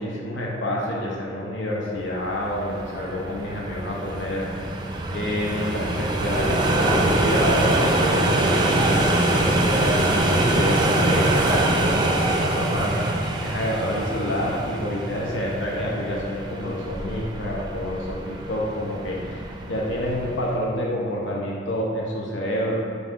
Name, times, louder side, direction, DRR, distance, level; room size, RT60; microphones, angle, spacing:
voice 1, 0.0-4.5 5.1-12.9 13.4-22.7, left 1 dB, 85° left, -3 dB, 0.9 m, -28 dB
sound 1, 2.2-20.5, right 1 dB, 25° right, 0.4 m, -24 dB
4.8 x 4.0 x 4.9 m, 2.2 s
head